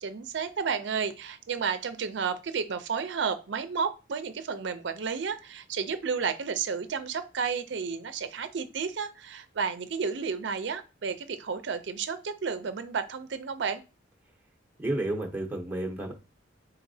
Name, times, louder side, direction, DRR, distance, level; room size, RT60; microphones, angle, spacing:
voice 1, 0.0-13.8, right 6 dB, 65° right, 10 dB, 0.5 m, -32 dB
voice 2, 14.8-16.1, right 1 dB, 10° right, 0 dB, 0.7 m, -31 dB
4.0 x 4.0 x 2.7 m, 0.31 s
head